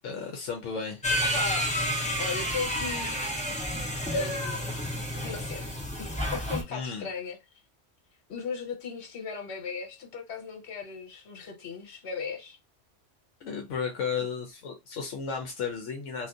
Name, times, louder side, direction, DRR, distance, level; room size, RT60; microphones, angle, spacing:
voice 1, 0.0-1.0 6.7-7.1 13.4-16.3, left 6 dB, 80° left, 1.0 m, -34 dB
sound 1, 1.0-6.6, equal, 10° left, 0.3 m, -30 dB
voice 2, 1.2-1.7 2.2-3.6 4.1-4.7 5.2-5.7 6.0-7.4 8.3-12.6, left 5 dB, 60° left, 1.1 m, -36 dB
2.6 x 2.5 x 3.5 m
omnidirectional pair, 1.3 m